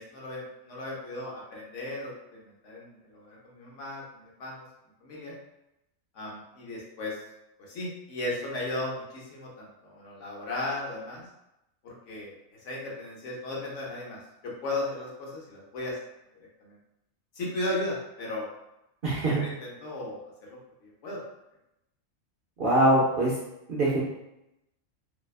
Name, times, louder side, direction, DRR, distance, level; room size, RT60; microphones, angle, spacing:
voice 1, 0.0-4.6 5.0-5.3 6.1-7.2 7.6-11.3 11.8-14.2 14.6-16.0 16.6-16.8 17.3-18.5 19.2-20.2 20.5-21.2, left 1 dB, 70° left, -4 dB, 1.0 m, -36 dB
voice 2, 19.0-19.4 22.6-23.3 23.7-24.0, right 1 dB, 60° right, -7 dB, 0.6 m, -23 dB
2.7 x 2.2 x 2.3 m, 0.87 s
omnidirectional pair, 1.4 m